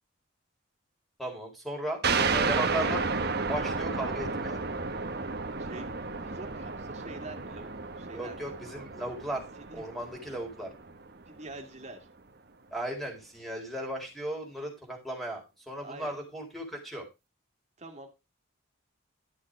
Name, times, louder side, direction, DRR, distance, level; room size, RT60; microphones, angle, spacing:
voice 1, 1.2-4.6 8.1-9.4 9.7-10.7 12.7-17.1, right 1 dB, ahead, 1 dB, 4.1 m, -36 dB
sound 1, 2.0-11.2, right 4 dB, 50° right, 1.2 m, -32 dB
voice 2, 6.1-8.4 9.2-9.3 9.7-9.8 11.3-12.1 15.8-16.2 17.8-18.1, right 2 dB, 35° right, 4 dB, 2.5 m, -45 dB
13.0 x 6.5 x 5.0 m, 0.26 s
head